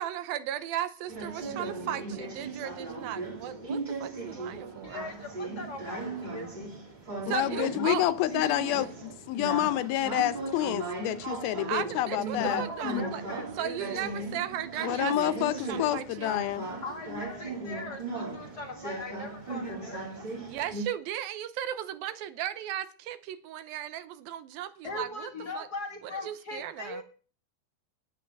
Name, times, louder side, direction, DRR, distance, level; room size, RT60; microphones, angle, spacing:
voice 1, 0.0-5.0 7.2-8.0 11.7-13.2 13.6-16.4 20.4-25.7 26.0-27.0, right 11 dB, 80° right, 2.6 m, -36 dB
sound 1, 1.1-20.8, right 3 dB, 20° right, 1.2 m, -37 dB
voice 2, 4.8-6.5 12.3-14.2 16.8-18.0 18.3-20.2 24.8-27.0, left 3 dB, 35° left, 1.8 m, -39 dB
voice 3, 7.3-12.7 14.8-16.7, left 14 dB, 85° left, 2.6 m, -28 dB
10.0 x 8.6 x 6.8 m
omnidirectional pair, 4.3 m